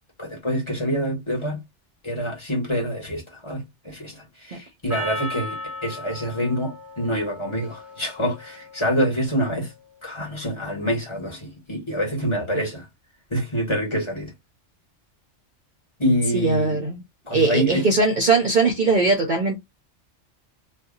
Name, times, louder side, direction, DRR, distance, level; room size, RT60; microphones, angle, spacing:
voice 1, 0.2-1.6 2.0-5.6 5.8-9.7 10.0-12.9 13.3-14.3 16.0-16.8 17.3-17.9, equal, 25° left, 1.2 m, -26 dB
Percussion, 4.9-9.5, left 1 dB, ahead, 1.3 m, -36 dB
voice 2, 16.3-17.0 17.3-19.6, right 3 dB, 50° right, 0.7 m, -20 dB
2.7 x 2.2 x 3.8 m
omnidirectional pair, 1.3 m